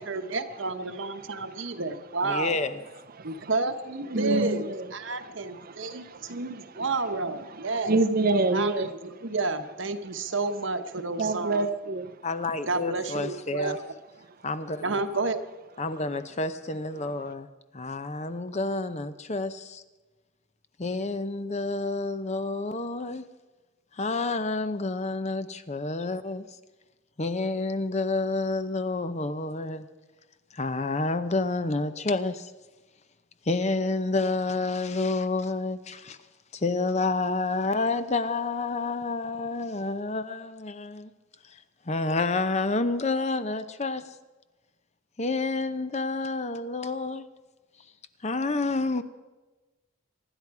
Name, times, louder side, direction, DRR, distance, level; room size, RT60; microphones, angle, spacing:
voice 1, 0.0-2.5 3.2-4.7 4.9-8.0 8.5-11.6 12.7-13.8 14.8-15.4, right 3 dB, 60° right, 1.1 m, -30 dB
voice 2, 1.2-1.8 3.2-3.5 4.1-4.9 5.3-6.8 7.5-8.9 11.2-12.2, right 2 dB, 45° right, 0.6 m, -28 dB
voice 3, 2.2-2.8 12.2-13.8 14.4-15.0 15.8-17.5 17.7-19.8 20.8-23.3 23.9-26.4 27.2-29.8 30.5-32.5 33.5-36.2 36.5-41.1 41.4-41.6 41.9-44.2 45.2-47.3 48.2-49.0, left 3 dB, 35° left, 0.7 m, -29 dB
25.0 x 11.0 x 4.8 m
head